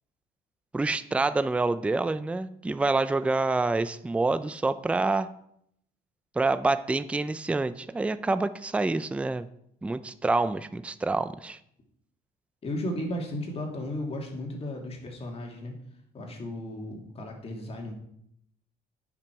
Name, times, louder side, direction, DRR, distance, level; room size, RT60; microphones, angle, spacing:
voice 1, 0.7-5.3 6.4-9.5 9.8-11.6, right 3 dB, 5° right, 13 dB, 0.4 m, -27 dB
voice 2, 12.6-15.7 16.1-17.9, left 1 dB, 35° left, 1 dB, 2.5 m, -35 dB
10.0 x 6.0 x 4.6 m, 0.72 s
cardioid pair, 110°, 17 cm